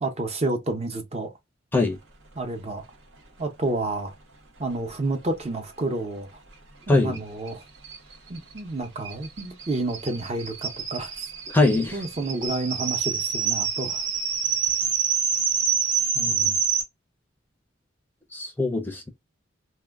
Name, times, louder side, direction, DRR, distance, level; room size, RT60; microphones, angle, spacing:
voice 1, 0.0-1.3 2.3-2.8 3.4-4.1 4.6-6.3 6.9-7.6 8.3-11.1 11.9-14.0 16.1-16.6, right 2 dB, 35° right, 0.6 m, -30 dB
sound 1, 7.1-7.2 7.5-7.6 7.8-16.8, right 7 dB, 80° right, 0.8 m, -27 dB
voice 2, 11.5-11.9 18.3-19.1, left 2 dB, 10° left, 0.5 m, -22 dB
2.1 x 2.1 x 3.4 m
head